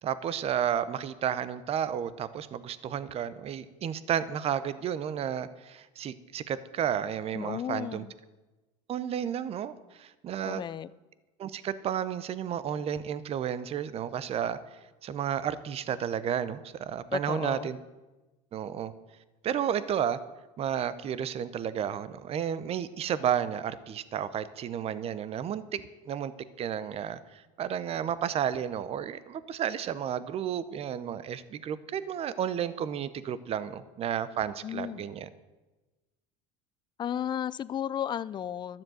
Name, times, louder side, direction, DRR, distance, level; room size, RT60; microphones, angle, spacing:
voice 1, 0.0-8.0 8.9-10.6 11.4-14.6 15.0-17.8 18.5-18.9 19.4-20.2 20.6-25.8 26.1-26.3 26.6-35.3, right 9 dB, 40° right, 15 dB, 0.7 m, -32 dB
voice 2, 7.3-8.1 10.4-10.9 17.1-17.7 34.6-35.1 37.0-38.8, left 9 dB, 30° left, 18 dB, 0.4 m, -34 dB
12.5 x 7.5 x 7.7 m, 1.1 s
supercardioid pair, 120°, 16 cm